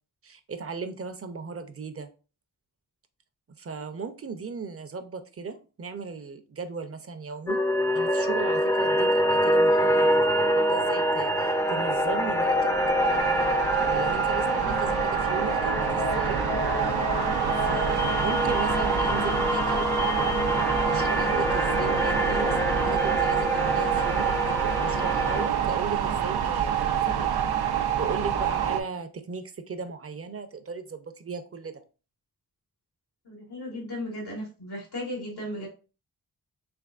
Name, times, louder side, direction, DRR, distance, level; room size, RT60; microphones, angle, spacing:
voice 1, 0.2-2.1 3.6-12.7 13.8-16.4 17.6-19.9 20.8-24.3 24.8-27.4 28.0-31.8, right 5 dB, 35° right, 9 dB, 0.6 m, -36 dB
sound 1, 7.5-25.5, equal, 10° left, 0.4 m, -26 dB
sound 2, 11.4-28.8, right 9 dB, 80° right, 0.5 m, -27 dB
voice 2, 14.4-15.0 33.2-35.7, left 1 dB, 85° left, -2 dB, 1.5 m, -36 dB
3.4 x 3.3 x 2.4 m, 0.34 s
cardioid pair, 45°, 38 cm